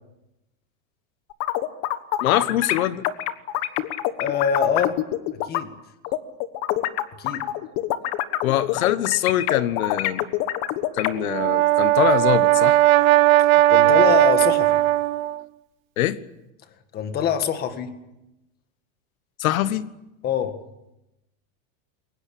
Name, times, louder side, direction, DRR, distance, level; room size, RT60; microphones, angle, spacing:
sound 1, 1.3-5.6 6.0-11.1, left 14 dB, 40° left, 1.3 m, -25 dB
voice 1, 2.2-3.0 8.4-10.3 10.9-12.8 16.0-16.2 19.4-19.9, left 13 dB, 85° left, 14 dB, 1.4 m, -23 dB
voice 2, 4.2-5.0 5.4-5.7 7.2-7.4 13.4-14.8 16.9-17.9 20.2-20.5, left 8 dB, 25° left, 9 dB, 1.8 m, -24 dB
Brass instrument, 11.2-15.4, right 16 dB, 80° right, 0.9 m, -17 dB
23.0 x 19.5 x 8.6 m, 0.92 s
supercardioid pair, 170°, 40 cm